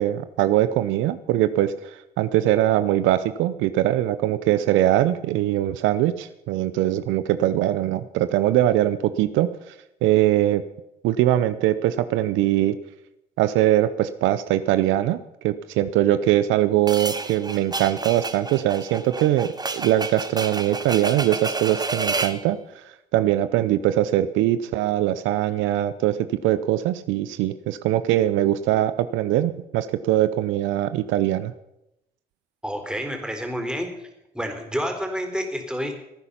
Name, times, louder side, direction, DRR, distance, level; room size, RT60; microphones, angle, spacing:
voice 1, 0.0-9.7 10.0-10.6 11.0-12.8 13.4-15.2 15.4-22.8 23.1-31.5, right 13 dB, 75° right, 13 dB, 0.6 m, -22 dB
sound 1, 16.9-22.4, right 3 dB, 20° right, 1.2 m, -30 dB
voice 2, 32.6-34.1 34.3-35.9, equal, 5° right, 4 dB, 4.1 m, -29 dB
17.0 x 9.8 x 5.7 m, 0.87 s
hypercardioid pair, 50°, 20 cm